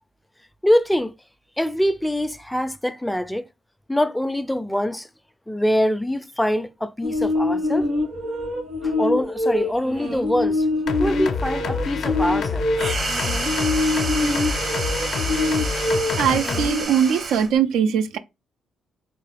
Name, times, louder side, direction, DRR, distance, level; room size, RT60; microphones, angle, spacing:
voice 1, 0.6-1.1 1.6-3.4 3.9-5.1 5.5-7.9 8.8-10.7 11.0-12.7, equal, 5° left, 0.3 m, -24 dB
sound 1, 7.0-16.8, left 2 dB, 65° right, 2.3 m, -25 dB
sound 2, 10.9-16.7, left 6 dB, 60° left, 0.5 m, -28 dB
sound 3, 12.7-17.6, right 3 dB, 45° right, 0.8 m, -29 dB
voice 2, 16.2-18.2, right 8 dB, 85° right, 0.3 m, -21 dB
3.6 x 2.3 x 3.3 m
cardioid pair, 90°, 0 cm